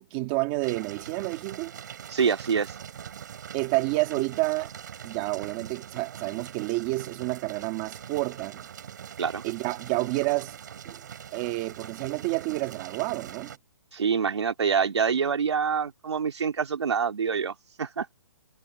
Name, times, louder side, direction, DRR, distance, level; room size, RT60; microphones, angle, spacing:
voice 1, 0.0-1.7 3.5-4.7 5.0-8.7 9.4-10.6 10.8-11.0 11.3-13.5, right 22 dB, 15° right, 2.2 m, -29 dB
sound 1, 0.6-13.6, right 8 dB, 45° right, 5.7 m, -42 dB
voice 2, 2.1-2.7 9.2-9.5 13.9-18.1, right 6 dB, 85° right, 2.8 m, -26 dB
hypercardioid pair, 180°, 14 cm